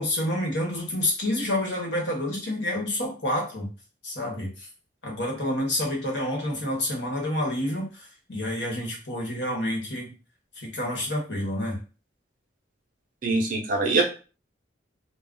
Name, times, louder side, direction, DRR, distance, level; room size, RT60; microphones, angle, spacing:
voice 1, 0.0-3.7 4.0-4.7 5.0-10.1 10.5-11.8, left 1 dB, 70° left, 0 dB, 1.0 m, -28 dB
voice 2, 13.2-14.0, right 3 dB, 45° right, 1 dB, 0.6 m, -23 dB
2.3 x 2.1 x 3.7 m, 0.35 s
head